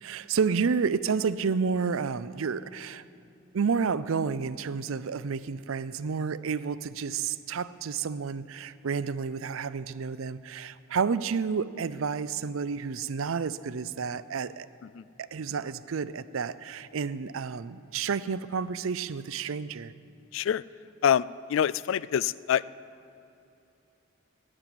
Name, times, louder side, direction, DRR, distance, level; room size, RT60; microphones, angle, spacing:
voice 1, 0.0-3.0 3.5-14.7 15.2-19.9, right 5 dB, 75° right, 16 dB, 0.5 m, -30 dB
voice 2, 20.3-20.6 21.0-22.6, left 9 dB, 65° left, 20 dB, 0.3 m, -25 dB
15.0 x 8.8 x 9.8 m, 2.8 s
head